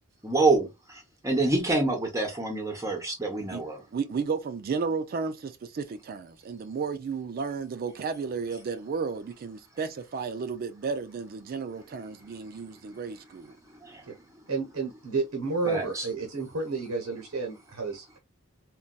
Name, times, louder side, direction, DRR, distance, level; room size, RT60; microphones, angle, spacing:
voice 1, 0.2-3.8 13.8-14.0 15.7-16.1, right 2 dB, 15° right, 0.7 m, -27 dB
voice 2, 3.9-13.5, right 5 dB, 45° right, 0.3 m, -33 dB
voice 3, 14.5-18.2, right 4 dB, 90° right, 0.8 m, -31 dB
3.9 x 2.2 x 2.2 m
head